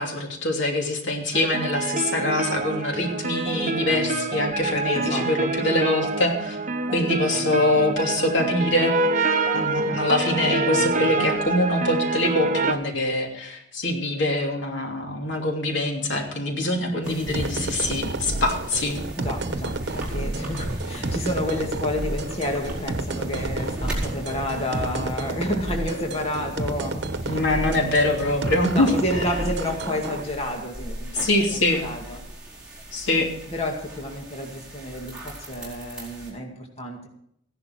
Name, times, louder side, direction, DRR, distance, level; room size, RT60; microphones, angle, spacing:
voice 1, 0.0-6.6 6.9-8.9 9.5-19.0 27.2-28.9 31.1-31.9 32.9-33.3, left 1 dB, 75° left, 2 dB, 2.9 m, -24 dB
sound 1, 1.3-12.7, right 3 dB, 40° right, 1.0 m, -26 dB
voice 2, 4.9-5.6 16.7-17.0 19.1-27.8 28.7-32.2 33.5-37.1, left 1 dB, 35° left, 1 dB, 2.1 m, -30 dB
sound 2, 17.0-36.3, right 1 dB, 5° right, 4.4 m, -40 dB
sound 3, 17.3-30.2, right 2 dB, 60° right, 1.1 m, -30 dB
15.5 x 11.0 x 4.5 m, 0.71 s
head